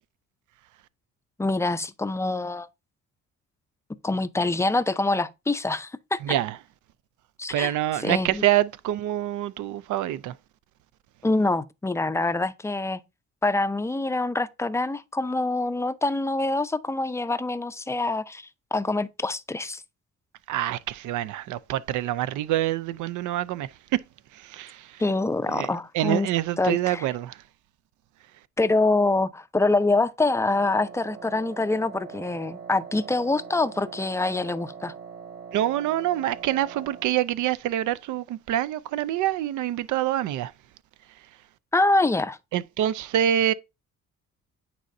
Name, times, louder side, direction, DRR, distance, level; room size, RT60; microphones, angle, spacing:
voice 1, 1.4-2.7 4.0-6.4 7.4-8.4 11.2-13.0 13.4-19.8 25.0-26.3 26.6-27.1 28.6-34.9 41.7-42.4, left 2 dB, 10° left, 0.4 m, -25 dB
voice 2, 6.2-6.6 7.5-10.3 20.5-24.0 24.3-25.0 25.5-25.7 25.9-27.4 35.5-40.5 42.5-43.5, right 12 dB, 80° right, 0.5 m, -26 dB
Wind instrument woodwind instrument, 30.5-37.2, right 6 dB, 35° right, 1.6 m, -42 dB
9.0 x 4.2 x 2.6 m
cardioid pair, 90°, 30 cm